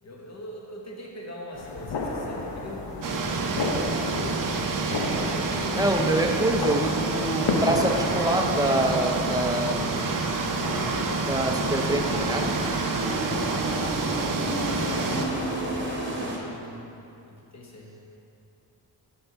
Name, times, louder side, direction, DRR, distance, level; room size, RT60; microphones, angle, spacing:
voice 1, 0.0-5.9 6.2-6.6 13.2-16.8 17.3-17.9, left 1 dB, 40° left, -2 dB, 1.2 m, -42 dB
sound 1, 1.5-16.0, left 3 dB, 75° left, 0.9 m, -34 dB
sound 2, 3.0-15.3, right 4 dB, 50° right, 0.7 m, -28 dB
sound 3, 3.5-16.4, right 1 dB, 25° right, 1.1 m, -36 dB
voice 2, 5.7-9.9 11.2-12.5, right 1 dB, 10° right, 3 dB, 0.6 m, -25 dB
6.8 x 5.7 x 4.0 m, 2.7 s
cardioid pair, 80°, 42 cm